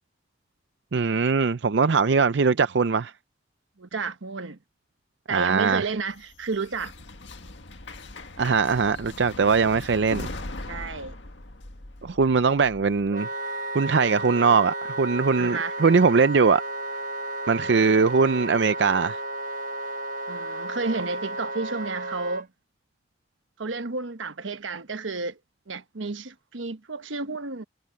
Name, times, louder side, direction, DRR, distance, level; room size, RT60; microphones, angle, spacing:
voice 1, 0.9-3.1 5.3-5.9 8.4-10.3 12.0-13.3 13.7-16.6 17.5-19.2, right 5 dB, 65° right, 0.5 m, -21 dB
voice 2, 3.8-4.6 5.3-6.9 10.7-11.2 15.4-15.7 20.3-22.5 23.6-25.4 25.7-27.6, right 3 dB, 85° right, 1.1 m, -31 dB
sound 1, 5.8-13.1, left 2 dB, 70° left, 1.8 m, -40 dB
Wind instrument woodwind instrument, 13.1-22.5, right 2 dB, 45° right, 1.2 m, -33 dB
head